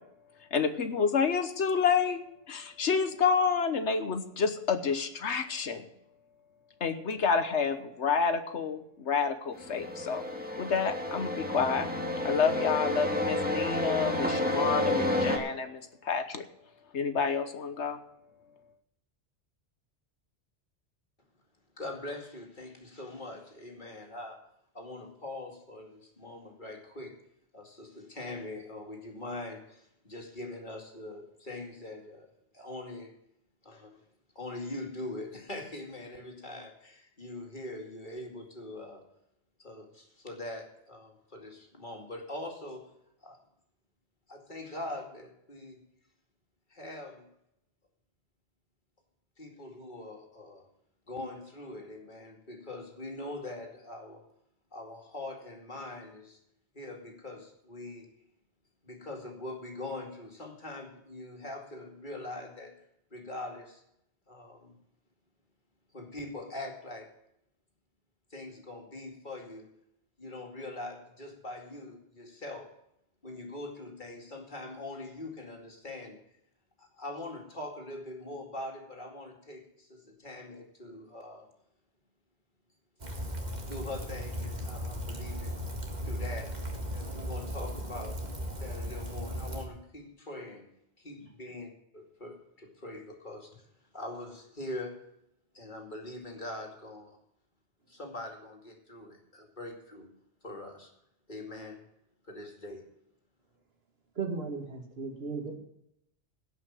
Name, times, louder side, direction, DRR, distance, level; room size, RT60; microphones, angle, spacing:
voice 1, 0.5-2.2 2.5-5.9 6.8-10.2 10.6-11.9 12.2-16.4 16.9-18.0, left 6 dB, 80° left, 9 dB, 1.4 m, -29 dB
sound 1, 9.5-15.4, left 1 dB, 10° right, 1.7 m, -31 dB
voice 2, 21.8-24.4 24.7-27.2 27.5-32.3 32.5-33.2 33.6-34.0 34.3-39.0 39.6-42.9 43.2-43.4 44.3-45.8 46.7-47.3 49.4-50.6 51.1-54.3 54.7-56.4 56.7-58.1 58.8-62.8 63.1-63.8 64.3-64.8 65.9-67.1 68.3-69.7 70.2-72.7 73.2-76.2 76.8-81.5 83.7-85.7 86.0-86.5 86.9-88.2 88.5-90.7 91.0-93.7 93.9-95.0 95.5-97.2 97.9-100.1 100.4-100.9 101.3-101.8 102.2-102.8, left 2 dB, 45° left, 2 dB, 2.6 m, -42 dB
Rain, 83.0-89.6, equal, 40° right, 2.0 m, -36 dB
voice 3, 104.2-105.6, right 4 dB, 60° right, 3 dB, 2.4 m, -36 dB
17.0 x 5.8 x 7.5 m, 0.78 s
omnidirectional pair, 1.2 m